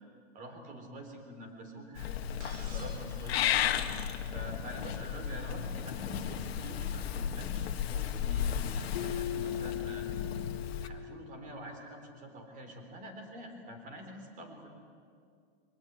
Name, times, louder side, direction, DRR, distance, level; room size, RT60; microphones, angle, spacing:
voice 1, 0.3-3.6 4.3-10.1 10.8-14.7, equal, 25° right, 5 dB, 4.0 m, -46 dB
Purr / Meow, 2.0-10.9, left 9 dB, 70° left, 1.7 m, -34 dB
sound 1, 2.4-4.7 6.3-6.4 7.5-7.6, right 3 dB, 55° right, 6.0 m, -54 dB
Keyboard (musical), 8.9-11.7, left 11 dB, 40° left, 1.4 m, -39 dB
23.5 x 19.0 x 9.4 m, 2.2 s
hypercardioid pair, 150°, 32 cm